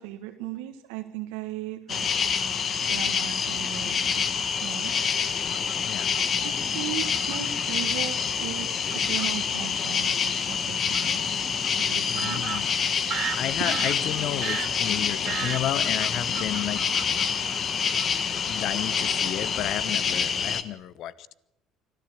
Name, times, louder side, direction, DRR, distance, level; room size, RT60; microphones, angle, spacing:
voice 1, 0.0-2.2 2.9-5.1 6.4-11.2 11.8-12.5 13.6-13.7, right 13 dB, 75° right, 1.5 m, -37 dB
sound 1, 1.9-20.6, left 6 dB, 45° left, 1.7 m, -27 dB
Fowl / Bird vocalization bird call bird song, 5.5-6.2 7.0-7.7 8.5-8.6 8.9-9.3 10.9-11.1 11.6-11.7 12.2-18.1 18.3-18.6 18.9-19.2 19.5-19.7, right 10 dB, 55° right, 2.7 m, -36 dB
voice 2, 12.1-12.7 13.3-16.8 18.5-21.3, left 12 dB, 60° left, 1.1 m, -32 dB
25.0 x 15.0 x 8.7 m
hypercardioid pair, 65°, 0 cm